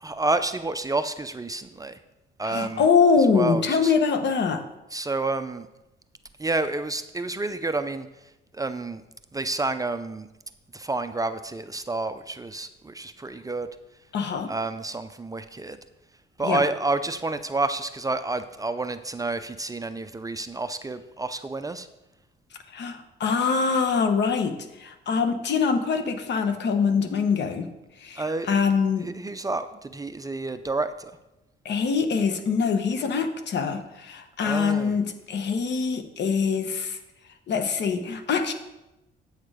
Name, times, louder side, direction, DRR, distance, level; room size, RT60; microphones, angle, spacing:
voice 1, 0.0-2.0 2.4-2.9 3.3-3.9 4.9-5.7 6.4-8.1 8.5-9.0 9.3-10.3 10.7-13.7 14.5-15.8 16.4-21.9 28.2-28.6 29.0-31.2 34.4-35.0, right 2 dB, 15° right, 10 dB, 0.5 m, -29 dB
voice 2, 2.4-4.6 14.1-14.5 16.4-16.6 22.7-27.7 28.0-29.1 31.6-37.0 37.5-38.5, left 5 dB, 60° left, 8 dB, 1.1 m, -24 dB
8.7 x 6.5 x 4.9 m, 0.95 s
cardioid pair, 90°, 20 cm